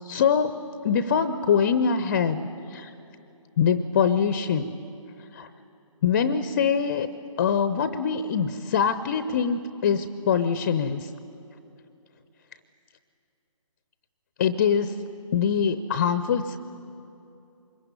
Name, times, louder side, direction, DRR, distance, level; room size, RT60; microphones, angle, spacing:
voice 1, 0.0-2.4 2.7-2.9 3.6-4.7 5.3-5.5 6.0-7.1 7.4-11.1 14.4-15.0 15.3-16.6, left 7 dB, 25° left, 13 dB, 0.6 m, -23 dB
25.0 x 22.0 x 9.8 m, 2.8 s
figure-of-eight pair, 140°, 17 cm